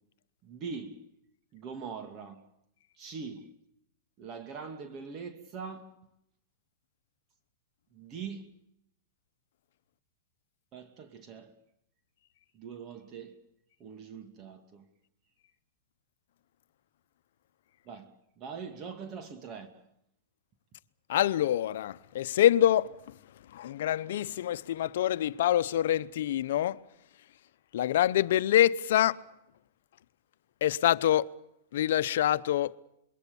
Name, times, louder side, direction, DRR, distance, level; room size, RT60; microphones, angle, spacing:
voice 1, 0.4-1.1 1.5-2.4 3.0-3.5 4.2-5.9 7.9-8.5 10.7-11.5 12.5-13.4 13.8-14.8 17.9-19.7, right 5 dB, 35° right, 2.4 m, -42 dB
voice 2, 21.1-23.2 23.5-26.8 27.7-29.2 30.6-31.3 31.7-32.8, left 12 dB, 70° left, 0.9 m, -26 dB
27.0 x 22.5 x 7.1 m
hypercardioid pair, 130°, 0 cm